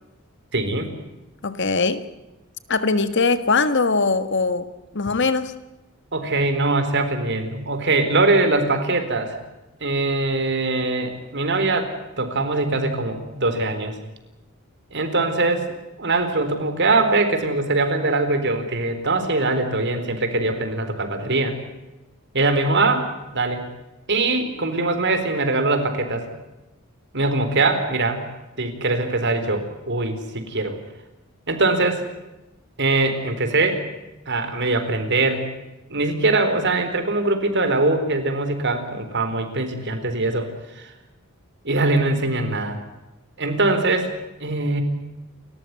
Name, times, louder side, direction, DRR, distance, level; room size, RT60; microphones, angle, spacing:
voice 1, 0.5-0.9 6.1-9.4 9.8-11.9 12.2-14.0 14.9-15.7 16.0-21.5 22.3-23.6 24.1-26.3 27.1-28.2 28.6-30.8 31.5-32.0 32.8-33.8 34.3-35.4 35.9-40.9 41.6-42.8 43.4-44.1 44.4-44.8, right 2 dB, 55° right, 8 dB, 4.1 m, -22 dB
voice 2, 1.4-2.1 2.7-5.5, left 4 dB, 55° left, 12 dB, 1.6 m, -21 dB
30.0 x 14.5 x 9.7 m, 0.99 s
head